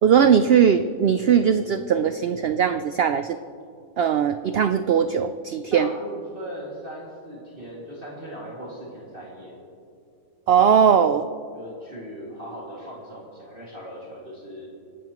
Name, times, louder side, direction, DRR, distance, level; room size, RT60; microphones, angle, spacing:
voice 1, 0.0-3.4 4.0-5.9 10.5-11.3, right 7 dB, 80° right, 9 dB, 0.5 m, -19 dB
voice 2, 5.7-9.6 11.5-14.7, equal, 35° right, -5 dB, 2.5 m, -38 dB
26.0 x 13.0 x 3.0 m, 2.4 s
omnidirectional pair, 1.6 m